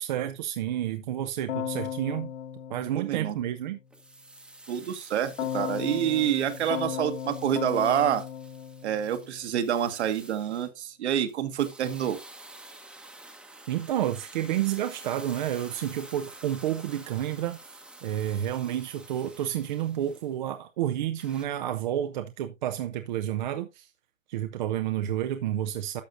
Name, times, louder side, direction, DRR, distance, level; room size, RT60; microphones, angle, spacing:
voice 1, 0.0-2.3 2.7-3.8 13.7-17.6 18.0-23.9 24.3-26.0, right 11 dB, 35° right, 0.6 m, -30 dB
Keyboard (musical), 1.5-3.8 5.4-9.7, left 9 dB, 75° left, 1.9 m, -36 dB
voice 2, 2.9-3.4 4.7-8.2 8.8-12.2, right 10 dB, 60° right, 1.5 m, -27 dB
sound 1, 3.9-10.7 11.3-20.3 21.2-21.5, right 2 dB, 5° right, 0.9 m, -49 dB
11.5 x 6.6 x 2.5 m
hypercardioid pair, 150°, 39 cm